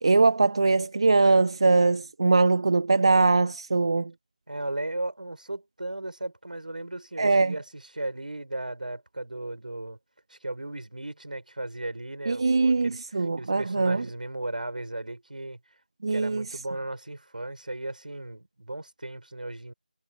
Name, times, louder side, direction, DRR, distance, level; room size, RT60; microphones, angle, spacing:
voice 1, 0.0-4.1 7.2-7.5 12.3-14.0 16.0-16.4, right 3 dB, 35° right, 1.2 m, -22 dB
voice 2, 4.5-10.0 10.3-15.6 16.1-19.7, right 1 dB, 65° right, 5.1 m, -36 dB
figure-of-eight pair, 170°, 5 cm